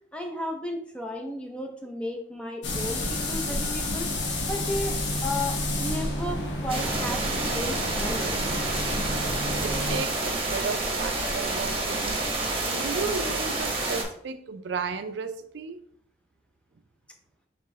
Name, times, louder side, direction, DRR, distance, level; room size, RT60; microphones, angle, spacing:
voice 1, 0.1-4.1 4.5-8.4, left 1 dB, 5° left, 3 dB, 0.6 m, -34 dB
sound 1, 2.6-10.0, left 1 dB, 90° left, 1.0 m, -30 dB
sound 2, 5.0-12.3, equal, 15° right, 1.7 m, -42 dB
sound 3, 6.7-14.0, right 2 dB, 30° right, 1.0 m, -29 dB
voice 2, 9.6-12.2 12.5-15.8, right 5 dB, 75° right, 9 dB, 0.4 m, -34 dB
4.4 x 3.6 x 3.2 m, 0.64 s
head